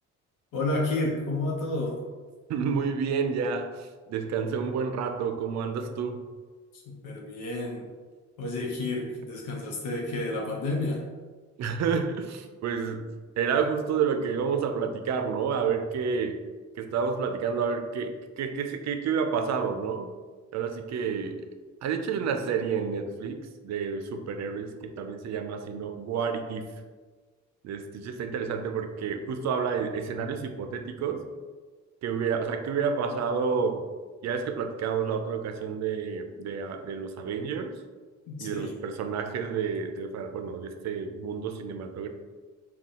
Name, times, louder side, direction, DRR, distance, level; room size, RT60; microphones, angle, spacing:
voice 1, 0.5-2.0 6.9-7.9 8.4-11.0 38.3-38.8, left 2 dB, 85° left, -2 dB, 0.8 m, -30 dB
voice 2, 2.5-6.2 11.6-13.1 13.4-16.4 16.8-20.1 20.5-21.5 21.8-26.7 27.6-31.3 32.0-33.9 34.2-37.8 38.4-42.1, right 6 dB, 65° right, 7 dB, 0.5 m, -30 dB
4.1 x 2.3 x 3.6 m, 1.4 s
cardioid pair, 90°, 30 cm